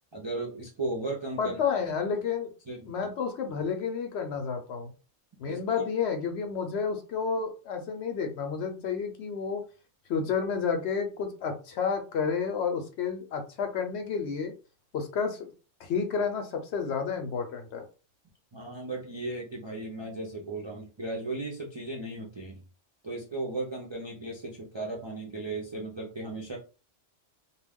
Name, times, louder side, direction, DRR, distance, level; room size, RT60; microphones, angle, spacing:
voice 1, 0.1-1.8 2.7-2.9 5.5-5.9 18.5-22.6 23.0-26.6, right 2 dB, 45° right, -2 dB, 0.3 m, -36 dB
voice 2, 1.4-2.5 2.9-4.9 5.4-9.6 10.1-14.5 14.9-15.4 15.8-17.8, left 6 dB, 65° left, 5 dB, 0.8 m, -30 dB
2.2 x 2.2 x 3.4 m, 0.34 s
omnidirectional pair, 1.3 m